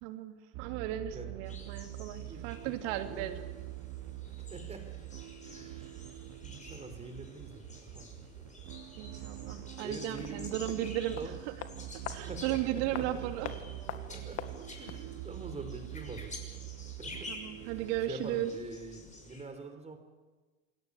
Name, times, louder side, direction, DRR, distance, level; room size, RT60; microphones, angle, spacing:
voice 1, 0.0-3.5 9.0-11.3 12.1-13.5 17.3-18.5, right 12 dB, 60° right, 7 dB, 2.8 m, -35 dB
sound 1, 0.5-18.2, right 19 dB, 45° right, 0.9 m, -45 dB
sound 2, 1.4-19.4, left 2 dB, 20° left, 6.1 m, -50 dB
voice 2, 2.2-3.3 4.4-5.0 5.4-6.0 6.4-8.1 9.8-10.9 11.1-11.4 12.2-13.7 13.9-16.3 16.8-17.3 17.6-20.0, right 3 dB, 15° right, 7 dB, 4.4 m, -46 dB
sound 3, 10.1-15.1 15.4-15.5, left 10 dB, 40° left, 1.9 m, -45 dB
27.0 x 17.5 x 8.4 m, 1.3 s
supercardioid pair, 115°, 40 cm